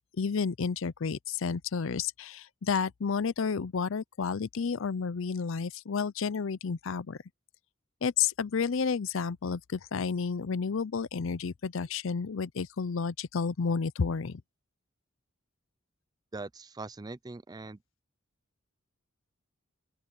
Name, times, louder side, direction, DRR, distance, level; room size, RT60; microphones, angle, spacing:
voice 1, 0.2-7.2 8.0-14.4, left 5 dB, 65° left, 0.5 m, -31 dB
voice 2, 16.3-17.8, right 3 dB, 20° right, 0.5 m, -41 dB
open air
head